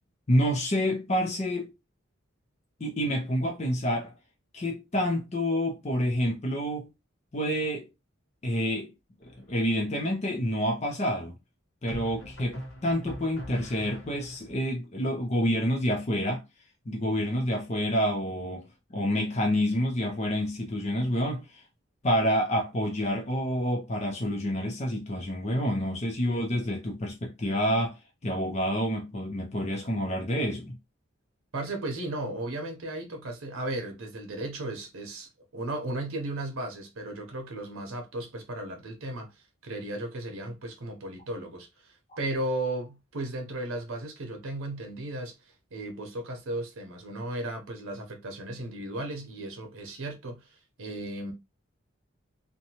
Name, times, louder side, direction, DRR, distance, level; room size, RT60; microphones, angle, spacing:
voice 1, 0.3-1.7 2.8-4.1 4.5-6.9 7.3-7.9 8.4-8.9 9.4-11.4 11.8-16.4 16.9-21.6 22.0-28.0 28.2-30.8, equal, 30° left, 0.5 m, -28 dB
sound 1, 9.2-9.8 11.9-14.5, equal, 60° left, 0.8 m, -41 dB
voice 2, 31.5-39.3 39.6-45.4 45.7-51.3, right 1 dB, 90° right, 0.8 m, -35 dB
2.7 x 2.2 x 2.8 m
head